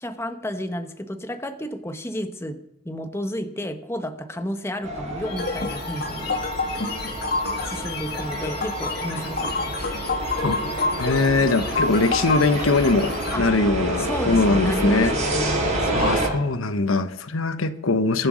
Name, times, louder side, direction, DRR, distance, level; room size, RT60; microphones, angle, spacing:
voice 1, 0.0-6.4 7.6-9.8 13.3-13.5 14.0-16.4, equal, 15° left, 8 dB, 0.9 m, -32 dB
sound 1, 4.8-16.3, right 1 dB, 35° right, 6.6 m, -28 dB
Clock, 5.3-11.1, left 2 dB, 30° left, 3.3 m, -40 dB
sound 2, 5.4-13.4, left 3 dB, 50° left, 1.9 m, -29 dB
voice 2, 11.0-15.2 15.9-18.3, left 3 dB, 90° left, 11 dB, 1.0 m, -22 dB
23.0 x 7.8 x 6.2 m, 0.81 s
head